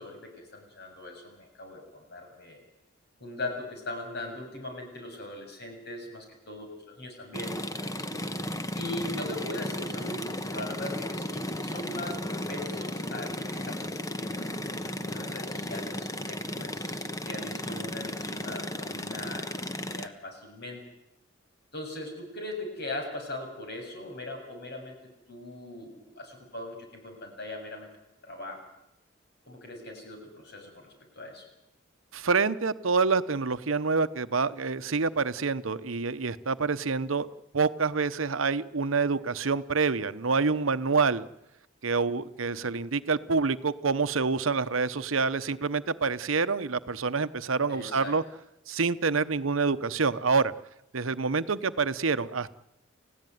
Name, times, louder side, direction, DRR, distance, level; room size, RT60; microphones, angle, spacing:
voice 1, 0.0-2.6 3.2-7.6 8.1-8.2 8.7-20.8 21.7-25.0 25.3-27.9 28.2-28.6 29.5-31.4 42.5-42.7 47.7-48.2, left 2 dB, 55° left, 4 dB, 7.4 m, -40 dB
sound 1, 7.3-20.1, left 1 dB, 15° left, 1.2 m, -35 dB
voice 2, 32.1-37.3 37.5-41.3 41.8-48.2 48.7-50.5 50.9-52.5, right 4 dB, 85° right, 13 dB, 0.9 m, -27 dB
30.0 x 16.0 x 9.4 m, 0.91 s
head